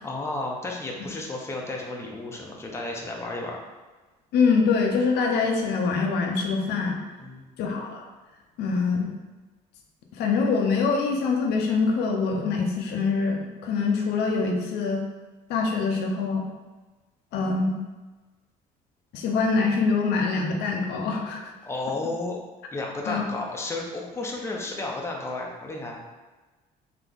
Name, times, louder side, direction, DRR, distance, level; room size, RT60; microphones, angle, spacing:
voice 1, 0.0-3.6 7.2-7.5 21.6-22.4 22.7-26.1, left 2 dB, 15° left, -1 dB, 0.7 m, -32 dB
voice 2, 4.3-7.0 7.6-8.0 8.6-9.1 10.1-15.0 15.5-16.4 17.3-17.8 19.1-21.5 23.1-23.2, left 4 dB, 80° left, 1 dB, 0.7 m, -24 dB
3.8 x 2.9 x 3.5 m, 1.2 s
cardioid pair, 110°, 17 cm